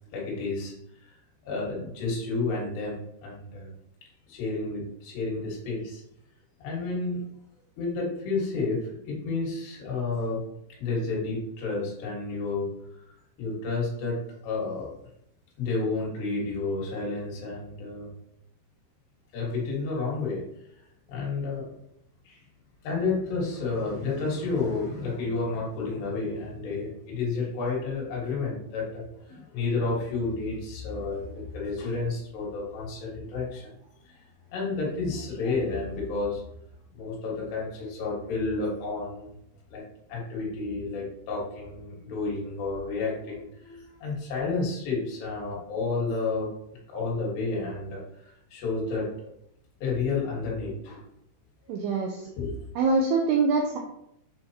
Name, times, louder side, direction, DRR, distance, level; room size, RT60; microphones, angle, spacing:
voice 1, 0.1-1.1 1.4-3.7 4.3-6.0 6.6-7.2 7.8-10.4 10.8-12.7 13.1-14.9 15.6-18.1 19.3-20.4 21.1-21.7 22.3-22.4 22.8-33.7 34.0-36.4 36.9-39.4 39.7-39.8 40.1-46.5 46.9-49.1 49.8-51.0 52.4-52.5, left 3 dB, 65° left, -4 dB, 3.6 m, -31 dB
voice 2, 51.7-52.3 52.8-53.8, right 4 dB, 90° right, 1 dB, 2.3 m, -24 dB
7.9 x 4.6 x 2.8 m, 0.77 s
omnidirectional pair, 5.4 m